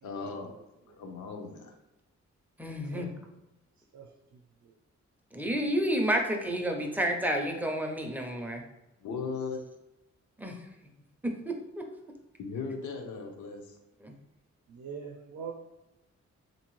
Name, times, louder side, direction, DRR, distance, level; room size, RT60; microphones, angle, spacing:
voice 1, 0.0-0.6 1.0-1.7 9.0-9.6 12.4-13.8, left 4 dB, 90° left, 3 dB, 0.7 m, -37 dB
voice 2, 2.6-3.1 5.3-8.6 10.4-10.6 11.2-11.9 14.0-14.1, equal, 5° right, 2 dB, 0.4 m, -30 dB
voice 3, 3.9-4.7 14.7-15.5, right 6 dB, 70° right, 2 dB, 0.5 m, -44 dB
3.6 x 2.7 x 3.0 m, 0.96 s
wide cardioid pair, 155°, 29 cm